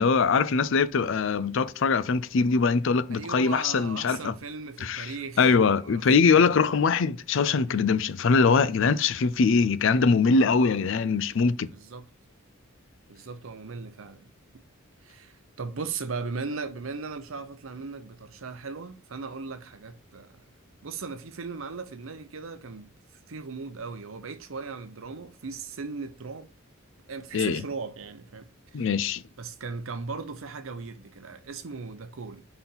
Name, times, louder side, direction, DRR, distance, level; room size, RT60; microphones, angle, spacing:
voice 1, 0.0-4.3 4.8-5.1 5.4-11.7 27.3-27.6 28.7-29.2, left 5 dB, 65° left, 0.4 m, -22 dB
voice 2, 3.1-6.5 11.7-12.1 13.1-14.2 14.5-14.6 15.0-20.5 20.8-22.9 23.3-26.5 27.1-28.9 29.4-32.5, right 4 dB, 75° right, 0.7 m, -38 dB
4.4 x 3.9 x 5.5 m
head